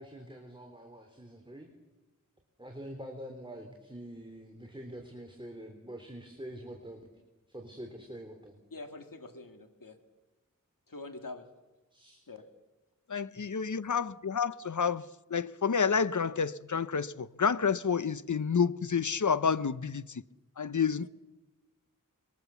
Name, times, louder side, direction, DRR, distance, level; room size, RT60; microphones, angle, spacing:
voice 1, 0.0-1.7 2.6-7.1 7.5-8.6 11.9-12.2, equal, 15° right, 3.5 m, -45 dB
voice 2, 8.7-10.0 10.9-11.5 12.3-12.5 13.8-13.9, left 3 dB, 75° left, 2.4 m, -45 dB
voice 3, 13.1-20.2 20.6-21.1, left 6 dB, 60° left, 0.8 m, -29 dB
26.0 x 22.5 x 7.1 m
wide cardioid pair, 45°, 33 cm